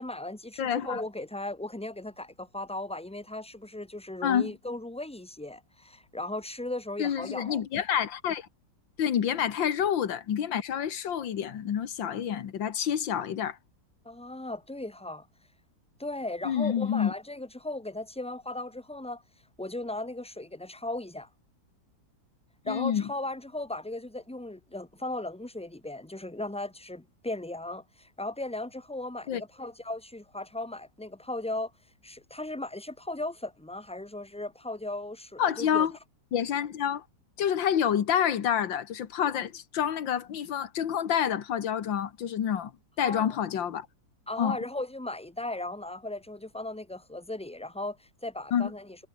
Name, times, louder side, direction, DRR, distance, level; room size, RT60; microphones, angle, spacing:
voice 1, 0.0-7.6 14.0-15.3 16.0-19.2 19.6-21.3 22.7-31.7 32.0-35.9 43.0-43.4 44.3-49.1, left 2 dB, 5° left, 0.8 m, -37 dB
voice 2, 0.6-1.0 4.2-4.5 7.0-8.5 9.0-13.6 16.4-17.1 22.7-23.0 29.3-29.4 35.4-35.9 36.3-37.0 37.4-42.7 43.0-43.9 44.4-44.6 48.5-48.7, left 9 dB, 85° left, 2.2 m, -28 dB
omnidirectional pair, 2.0 m